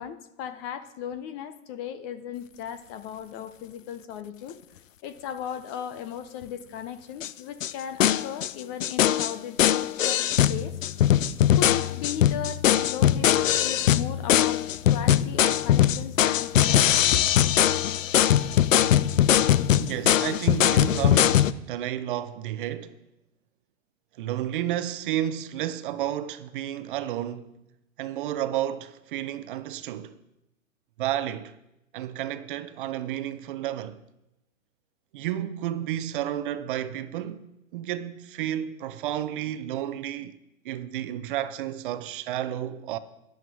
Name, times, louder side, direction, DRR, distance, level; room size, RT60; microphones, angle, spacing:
voice 1, 0.0-4.6 5.0-10.8 11.5-17.2, left 9 dB, 25° left, 0.7 m, -36 dB
sound 1, 7.2-7.3 7.6-7.7 8.0-8.5 8.8-21.5, left 11 dB, 70° left, 0.7 m, -21 dB
voice 2, 19.8-23.0 24.2-27.5 28.0-30.2 31.0-31.6 31.9-34.0 35.1-40.4 40.6-43.0, right 12 dB, 40° right, 0.7 m, -31 dB
12.5 x 11.0 x 4.8 m
hypercardioid pair, 130°, 40 cm